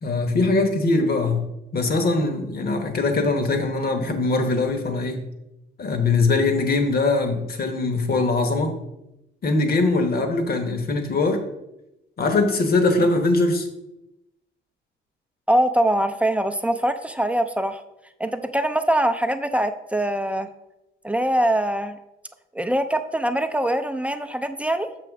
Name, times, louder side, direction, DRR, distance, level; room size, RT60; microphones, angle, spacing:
voice 1, 0.0-5.2 5.8-8.8 9.4-11.5 12.2-13.7, left 3 dB, 50° left, 6 dB, 1.1 m, -22 dB
voice 2, 15.5-17.8 18.2-20.5 21.0-22.0 22.5-24.9, right 1 dB, 5° right, 8 dB, 0.4 m, -23 dB
6.8 x 3.0 x 6.0 m, 0.91 s
cardioid pair, 90°, 20 cm